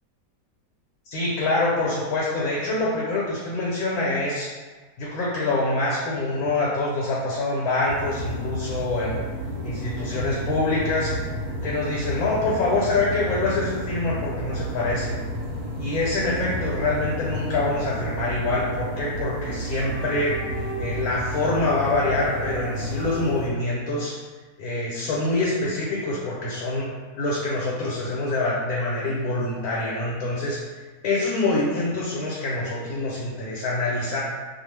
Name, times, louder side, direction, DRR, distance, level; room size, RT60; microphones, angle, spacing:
voice 1, 1.1-4.5 5.0-9.2 9.6-11.1 11.6-15.2 15.8-20.4 20.8-24.2 24.6-26.9 27.2-34.2, left 2 dB, 80° left, -4 dB, 1.1 m, -25 dB
sound 1, 7.9-23.5, equal, 90° right, 1.1 m, -31 dB
2.4 x 2.3 x 3.1 m, 1.4 s
omnidirectional pair, 1.5 m